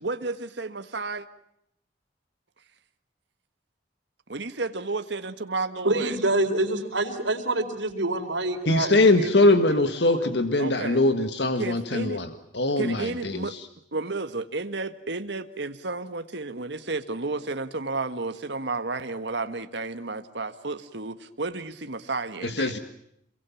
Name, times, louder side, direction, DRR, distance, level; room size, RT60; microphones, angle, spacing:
voice 1, 0.0-1.3 4.3-6.2 10.6-11.0 11.6-12.2 12.8-13.5 13.9-22.7, right 3 dB, 70° right, 9 dB, 1.6 m, -32 dB
voice 2, 5.8-10.3, right 2 dB, 85° right, 4 dB, 4.5 m, -27 dB
voice 3, 8.7-12.3 12.5-13.5 22.4-22.8, left 2 dB, 70° left, 9 dB, 1.7 m, -22 dB
28.0 x 23.0 x 7.1 m, 0.73 s
head